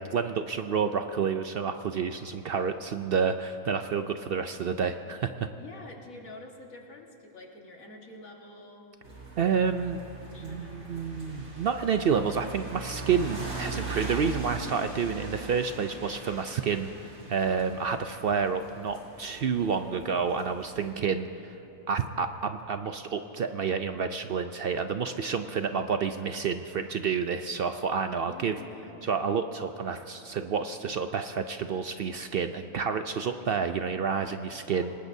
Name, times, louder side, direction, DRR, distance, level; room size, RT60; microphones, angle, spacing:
voice 1, 0.0-5.5 9.4-10.0 10.4-21.6 21.9-28.6 29.0-34.9, right 6 dB, 60° right, 8 dB, 0.6 m, -29 dB
voice 2, 5.6-8.9 10.2-10.9 15.0-15.5 28.2-29.1 34.7-35.0, left 2 dB, 90° left, 0 dB, 2.1 m, -48 dB
sound 1, 9.0-20.9, right 3 dB, 80° right, 3.5 m, -41 dB
27.5 x 19.5 x 2.7 m, 2.8 s
omnidirectional pair, 1.4 m